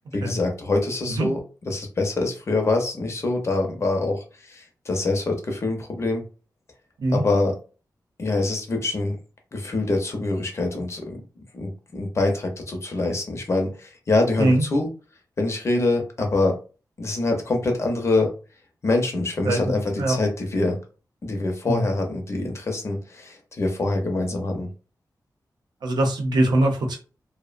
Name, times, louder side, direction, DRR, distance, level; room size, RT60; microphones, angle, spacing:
voice 1, 0.1-1.4 1.7-6.3 7.1-7.5 8.2-9.2 9.5-14.9 15.4-16.6 17.0-18.3 18.8-20.8 21.2-24.7, left 2 dB, 40° left, 3 dB, 0.6 m, -25 dB
voice 2, 19.4-20.2 21.7-21.9 25.8-27.0, right 1 dB, 85° right, 2 dB, 0.7 m, -22 dB
2.5 x 2.0 x 2.4 m, 0.35 s
wide cardioid pair, 155°, 7 cm